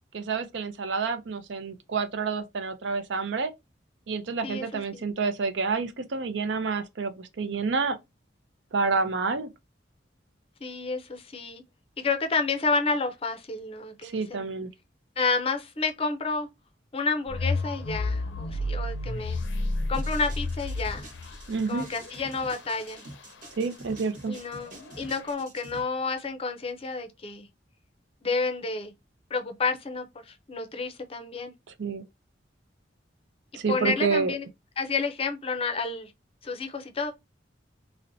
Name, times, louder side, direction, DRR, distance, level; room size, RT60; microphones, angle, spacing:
voice 1, 0.1-3.5 4.1-8.0 8.7-9.5 14.0-14.7 21.5-21.9 23.6-24.3 31.8-32.0 33.5-34.3, right 4 dB, 70° right, 0.5 m, -28 dB
voice 2, 4.4-5.0 10.6-11.6 12.0-14.5 15.2-16.5 16.9-19.4 19.9-21.1 21.7-23.0 24.3-27.5 28.2-28.9 29.3-31.5 33.7-34.5 34.8-36.1 36.4-37.1, left 4 dB, 30° left, 0.5 m, -30 dB
sound 1, 17.3-23.2 24.6-25.3, left 2 dB, 85° left, 0.6 m, -31 dB
sound 2, 19.9-25.8, right 2 dB, 50° right, 1.1 m, -47 dB
3.9 x 2.1 x 2.6 m
head